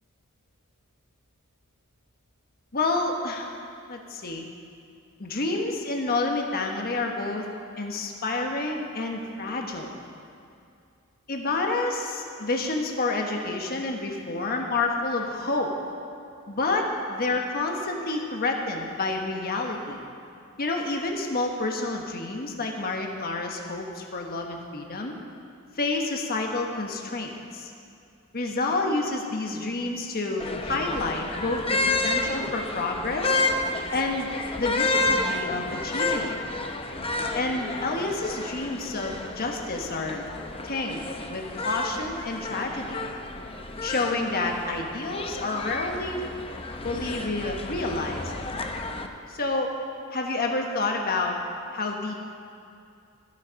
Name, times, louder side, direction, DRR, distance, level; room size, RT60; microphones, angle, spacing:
voice 1, 2.7-3.6 3.9-4.5 5.2-7.5 7.8-9.9 11.3-15.7 16.5-20.0 20.6-25.1 25.7-27.7 28.3-33.4 33.9-34.3 34.6-36.4 37.3-40.2 40.6-41.0 41.3-43.0 43.8-46.2 46.8-48.3 49.3-49.8 50.1-51.4 51.7-52.1, left 2 dB, 45° left, 1 dB, 1.2 m, -29 dB
sound 1, 30.4-49.1, left 2 dB, 25° left, 0.7 m, -30 dB
15.0 x 10.5 x 5.2 m, 2.4 s
head